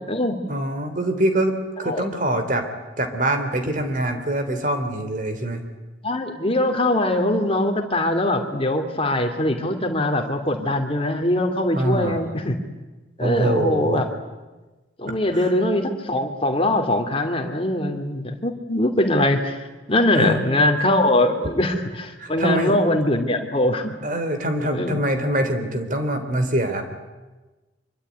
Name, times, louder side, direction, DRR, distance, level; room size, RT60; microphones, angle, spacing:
voice 1, 0.5-2.7 3.0-5.6 11.8-12.3 13.2-14.1 15.0-15.5 20.1-20.4 22.2-22.7 24.0-26.8, right 1 dB, 40° right, 7 dB, 3.3 m, -24 dB
voice 2, 6.0-12.6 13.2-14.1 15.0-23.9 24.7-25.0, left 1 dB, 30° left, 4 dB, 2.8 m, -22 dB
25.0 x 24.0 x 9.4 m, 1.2 s
head